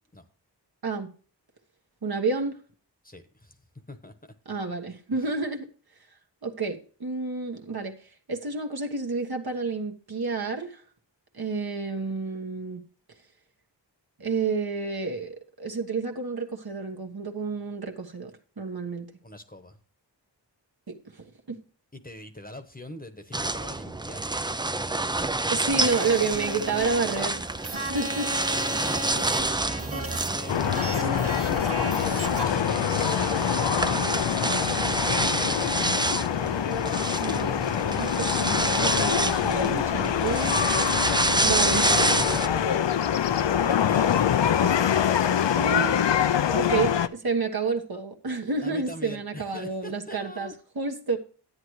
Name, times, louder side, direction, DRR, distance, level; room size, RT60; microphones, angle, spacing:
voice 1, 2.0-2.5 4.5-5.7 6.4-7.9 8.3-10.8 11.3-12.8 14.2-18.3 18.6-19.1 20.9-21.6 25.5-28.3 37.2-40.6 41.4-42.1 45.5-46.1 46.5-51.2, right 4 dB, 55° right, 1.5 m, -30 dB
voice 2, 3.0-3.6 3.9-4.1 19.2-19.8 21.9-25.4 28.5-31.1 31.6-35.4 39.3-39.6 40.3-41.2 41.7-43.0 43.3-46.0 48.6-50.5, left 1 dB, 20° left, 1.1 m, -43 dB
sound 1, 23.3-42.5, right 2 dB, 10° right, 0.4 m, -28 dB
sound 2, 25.7-32.4, right 1 dB, 30° right, 2.0 m, -35 dB
sound 3, 30.5-47.1, left 9 dB, 75° left, 0.6 m, -25 dB
10.5 x 9.2 x 3.2 m
wide cardioid pair, 65°, 44 cm